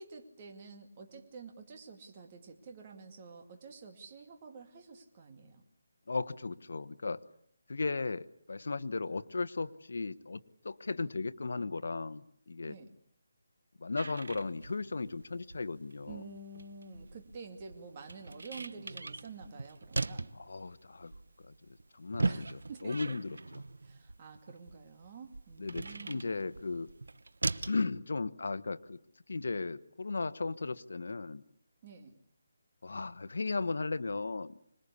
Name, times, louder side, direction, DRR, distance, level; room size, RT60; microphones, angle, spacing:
voice 1, 0.0-5.6 12.7-12.9 16.1-20.3 22.2-23.2 23.8-26.3 31.8-32.2, right 4 dB, 25° right, 4 dB, 2.4 m, -49 dB
voice 2, 6.1-7.2 7.7-12.8 13.8-16.2 20.5-21.1 21.5-23.6 25.6-26.9 27.6-29.0 29.3-31.4 32.8-34.8, left 3 dB, 65° left, 13 dB, 1.2 m, -36 dB
sound 1, 13.9-27.8, right 3 dB, 85° right, 1.0 m, -40 dB
26.0 x 20.5 x 8.5 m, 0.68 s
hypercardioid pair, 175°, 0 cm